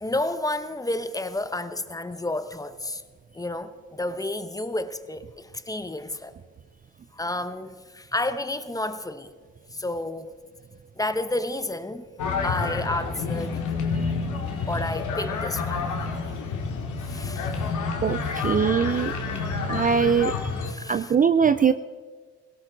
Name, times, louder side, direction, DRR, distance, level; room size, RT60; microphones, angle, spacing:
voice 1, 0.0-3.0 3.3-6.3 7.1-9.3 9.7-10.3 11.0-12.0 12.4-13.7 14.7-15.9 17.1-17.7 18.3-18.5 20.7-21.1, left 1 dB, 10° left, 0.9 m, -31 dB
sound 1, 12.2-20.7, left 4 dB, 80° left, 2.2 m, -29 dB
voice 2, 18.0-19.1 19.7-20.5 20.9-21.7, right 6 dB, 30° right, 0.4 m, -21 dB
17.5 x 17.5 x 4.0 m
cardioid pair, 90°, 30 cm